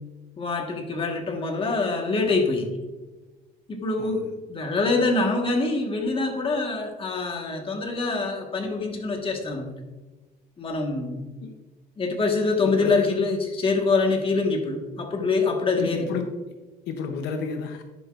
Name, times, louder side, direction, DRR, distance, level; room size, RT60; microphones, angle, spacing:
voice 1, 0.4-2.8 3.7-9.7 10.6-11.2 12.0-16.1, left 3 dB, 30° left, 2 dB, 1.5 m, -25 dB
voice 2, 12.6-13.1 15.7-16.3 16.9-17.8, left 5 dB, 85° left, 6 dB, 0.8 m, -32 dB
10.5 x 6.0 x 2.5 m, 1.2 s
cardioid pair, 110°, 17 cm